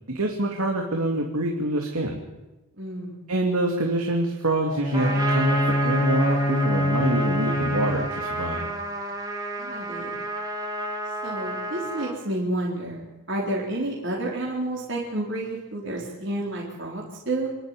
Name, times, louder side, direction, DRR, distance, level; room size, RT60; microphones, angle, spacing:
voice 1, 0.1-2.2 3.3-8.7, right 1 dB, 85° right, 1 dB, 2.7 m, -26 dB
voice 2, 2.8-3.2 9.6-10.2 11.2-17.5, right 1 dB, 55° right, -3 dB, 4.0 m, -30 dB
Bowed string instrument, 4.7-8.4, left 1 dB, 25° left, 1.2 m, -25 dB
Trumpet, 4.9-12.2, right 1 dB, 15° right, 2.3 m, -30 dB
27.5 x 11.5 x 9.8 m, 1.1 s
head